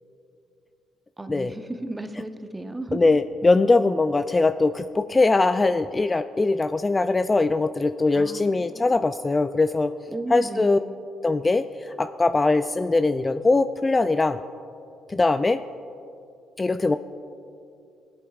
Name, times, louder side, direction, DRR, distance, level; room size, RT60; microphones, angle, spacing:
voice 1, 1.2-3.1 8.1-8.9 10.1-11.0, right 2 dB, 15° right, 7 dB, 0.8 m, -35 dB
voice 2, 2.9-9.9 10.3-10.8 11.2-14.4 15.1-15.6 16.6-17.0, left 3 dB, 25° left, 10 dB, 0.3 m, -21 dB
19.0 x 8.4 x 2.4 m, 2.6 s
supercardioid pair, 70°, 0 cm